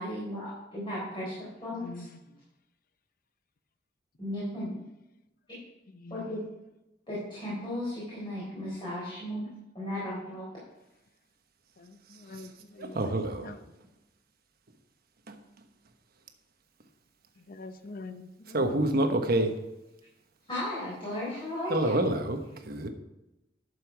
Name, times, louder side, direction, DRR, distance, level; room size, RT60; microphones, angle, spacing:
voice 1, 0.0-2.0 4.2-4.8 6.1-6.4 7.1-9.5 9.7-10.5 20.5-21.9, left 1 dB, 25° left, -8 dB, 3.9 m, -35 dB
voice 2, 1.7-2.2 5.9-6.4 11.8-13.6 17.4-18.9, left 3 dB, 50° left, 9 dB, 0.7 m, -45 dB
voice 3, 12.8-13.5 15.3-15.4 18.5-19.5 21.7-22.9, right 1 dB, 55° right, 6 dB, 1.2 m, -27 dB
11.5 x 6.9 x 4.7 m, 0.95 s
head